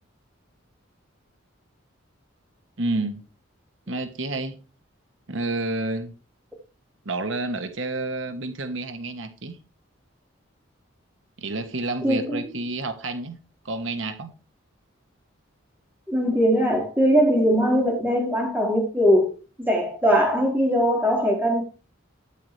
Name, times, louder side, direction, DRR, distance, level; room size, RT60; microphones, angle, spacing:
voice 1, 2.8-3.2 3.9-4.5 5.3-6.1 7.0-9.6 11.4-13.4 13.6-14.3, right 2 dB, 75° right, 1.4 m, -29 dB
voice 2, 12.0-12.4 16.1-19.3 19.6-21.6, equal, 10° right, 4.5 m, -20 dB
13.0 x 9.7 x 3.3 m
head